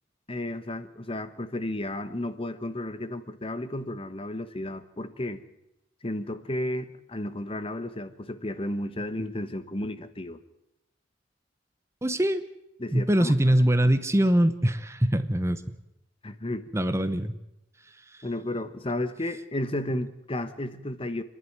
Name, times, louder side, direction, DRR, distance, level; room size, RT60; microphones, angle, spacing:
voice 1, 0.3-5.4 6.0-10.4 12.8-13.3 16.2-16.7 18.2-21.2, left 1 dB, 30° left, 12 dB, 1.1 m, -33 dB
voice 2, 12.0-12.4 12.9-15.6 16.7-17.3, right 1 dB, 15° right, 11 dB, 0.8 m, -23 dB
26.0 x 11.0 x 9.4 m, 0.86 s
head